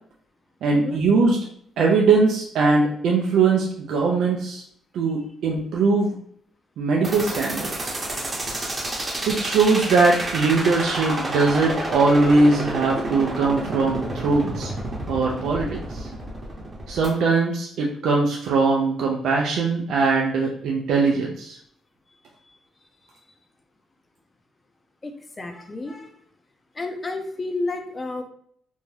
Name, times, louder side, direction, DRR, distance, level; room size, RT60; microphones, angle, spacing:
voice 1, 0.6-1.4 1.8-4.6 4.9-6.2 6.8-7.9 9.3-14.7 15.1-16.1 16.9-21.6, right 3 dB, 75° right, -1 dB, 0.4 m, -21 dB
sound 1, 7.0-17.1, right 2 dB, 25° right, 0.9 m, -29 dB
voice 2, 25.0-26.1 26.7-28.2, left 2 dB, 25° left, 5 dB, 0.6 m, -31 dB
2.6 x 2.2 x 3.2 m, 0.64 s
cardioid pair, 90°, 0 cm